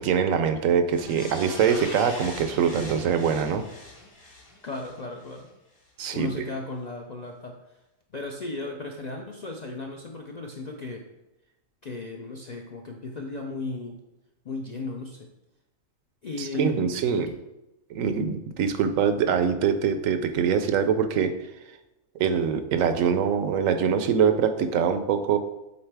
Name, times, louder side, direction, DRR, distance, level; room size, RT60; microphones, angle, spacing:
voice 1, 0.0-3.6 6.0-6.5 16.4-17.4 17.9-21.4 22.2-25.4, right 7 dB, 80° right, 9 dB, 1.0 m, -24 dB
sound 1, 0.9-5.4 5.8-5.9, left 2 dB, 75° left, 1.7 m, -42 dB
voice 2, 4.6-5.5 6.1-7.8 8.1-11.0 11.8-14.0 14.4-15.3 16.2-17.2, left 3 dB, 60° left, 1 dB, 0.4 m, -35 dB
7.9 x 4.0 x 3.4 m, 0.96 s
omnidirectional pair, 1.4 m